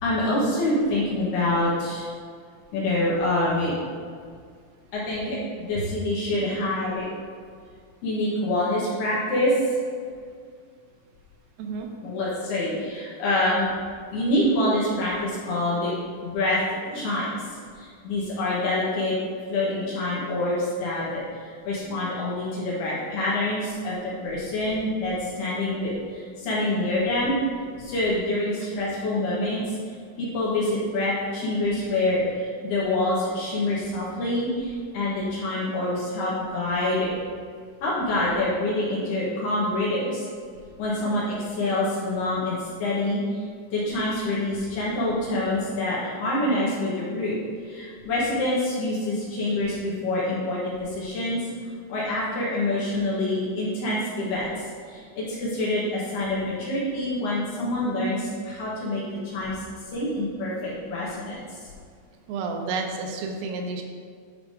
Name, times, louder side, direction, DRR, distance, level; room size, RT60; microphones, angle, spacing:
voice 1, 0.0-2.1 2.7-3.7 4.9-7.1 8.0-9.6 12.0-13.7 14.1-15.9 16.2-16.6 16.9-19.2 19.5-27.4 27.8-29.8 30.2-37.1 37.8-40.3 40.8-43.4 43.7-51.4 51.9-59.6 59.9-61.6, left 1 dB, 65° left, -7 dB, 3.0 m, -26 dB
voice 2, 62.3-63.8, right 4 dB, 85° right, 2 dB, 3.4 m, -30 dB
11.0 x 3.7 x 4.9 m, 2.1 s
omnidirectional pair, 5.7 m